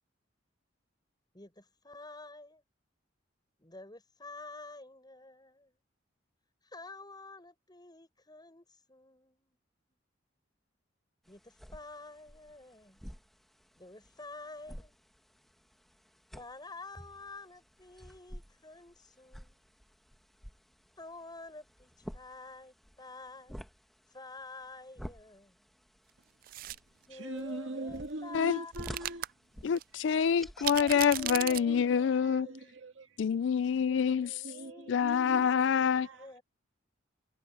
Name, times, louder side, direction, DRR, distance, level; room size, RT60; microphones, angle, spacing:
voice 1, 1.3-2.6 3.6-5.8 6.6-9.6 9.9-10.0 11.3-13.0 13.8-14.9 16.3-19.7 21.0-23.6 24.1-25.7 27.1-28.7 30.2-32.9 33.9-35.7 36.1-36.4, left 3 dB, 20° left, 7.3 m, -49 dB
sound 1, 11.3-30.8, equal, ahead, 1.4 m, -51 dB
sound 2, 26.4-26.8 28.7-29.3 29.8-29.9 30.6-31.6, right 14 dB, 45° right, 0.3 m, -35 dB
voice 2, 27.1-29.3 31.1-33.2 34.4-36.4, right 2 dB, 75° right, 1.8 m, -42 dB
voice 3, 29.6-32.5 33.2-34.3 34.9-36.1, left 7 dB, 70° left, 0.3 m, -27 dB
head